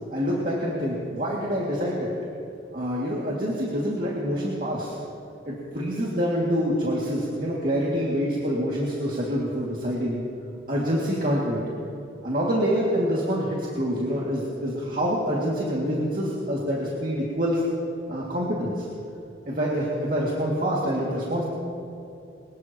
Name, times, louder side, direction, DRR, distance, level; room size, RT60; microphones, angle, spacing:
voice 1, 0.1-2.1 2.7-5.0 5.4-10.2 10.7-11.6 12.2-17.6 18.1-18.9 19.5-21.4, equal, 50° right, -5 dB, 2.3 m, -26 dB
24.0 x 20.0 x 3.0 m, 2.6 s
head